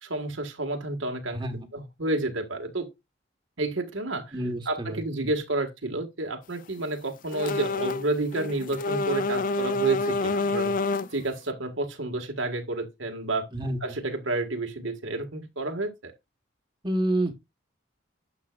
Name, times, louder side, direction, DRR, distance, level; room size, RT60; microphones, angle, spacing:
voice 1, 0.0-1.4 1.7-2.9 3.6-4.3 4.7-10.7 11.1-13.4 13.8-16.1, right 2 dB, 75° right, 1.8 m, -30 dB
voice 2, 1.3-1.7 4.3-5.3 13.5-13.8 16.8-17.4, right 1 dB, 25° right, 1.4 m, -29 dB
sound 1, 7.3-8.1 8.3-11.2, left 3 dB, 45° left, 0.5 m, -28 dB
11.5 x 7.5 x 2.5 m
head